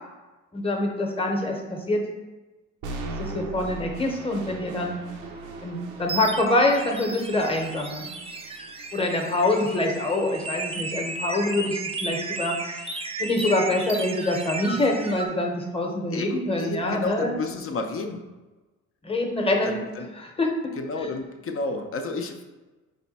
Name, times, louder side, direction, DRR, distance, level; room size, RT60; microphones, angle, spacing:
voice 1, 0.5-2.0 3.2-5.0 5.6-8.1 8.9-12.6 13.2-17.3 19.0-19.8 20.2-20.5, left 1 dB, 20° left, 2 dB, 0.8 m, -25 dB
sound 1, 2.8-10.8, right 2 dB, 80° right, 0.6 m, -40 dB
sound 2, 5.2-15.3, right 3 dB, 20° right, 0.4 m, -34 dB
voice 2, 16.1-18.2 19.6-20.1 20.8-22.4, left 3 dB, 45° left, 5 dB, 0.5 m, -31 dB
4.8 x 2.2 x 4.0 m, 1.2 s
cardioid pair, 90°, 30 cm